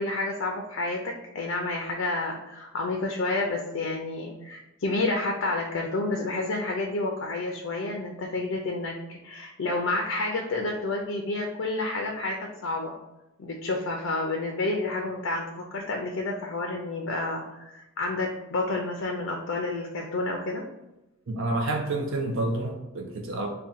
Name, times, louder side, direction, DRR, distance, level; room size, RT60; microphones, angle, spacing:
voice 1, 0.0-8.9 9.2-13.0 13.4-20.6, left 2 dB, 60° left, 1 dB, 0.4 m, -30 dB
voice 2, 21.3-23.5, right 2 dB, 65° right, 1 dB, 0.5 m, -29 dB
3.6 x 2.2 x 4.2 m, 0.97 s
head